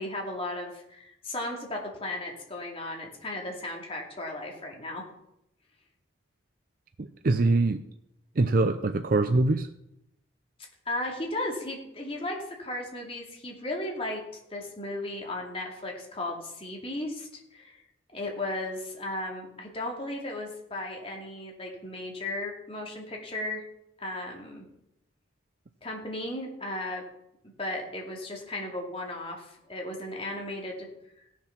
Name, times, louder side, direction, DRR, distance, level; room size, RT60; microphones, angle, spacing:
voice 1, 0.0-5.0 10.9-17.8 18.1-23.6 24.0-24.7 25.8-27.0 27.6-30.9, left 1 dB, 30° left, -1 dB, 2.7 m, -35 dB
voice 2, 7.0-7.8 8.4-9.7, right 2 dB, 45° right, 8 dB, 0.5 m, -23 dB
16.5 x 7.4 x 5.9 m, 0.82 s
head